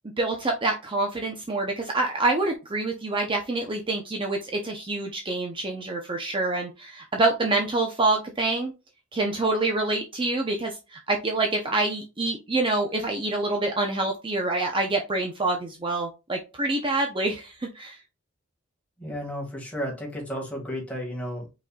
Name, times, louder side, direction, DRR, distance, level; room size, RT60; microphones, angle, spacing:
voice 1, 0.2-8.7 9.1-18.0, right 2 dB, 25° right, 2 dB, 0.7 m, -26 dB
voice 2, 19.0-21.5, equal, 5° left, -1 dB, 1.9 m, -33 dB
5.2 x 4.2 x 2.3 m, 0.27 s
head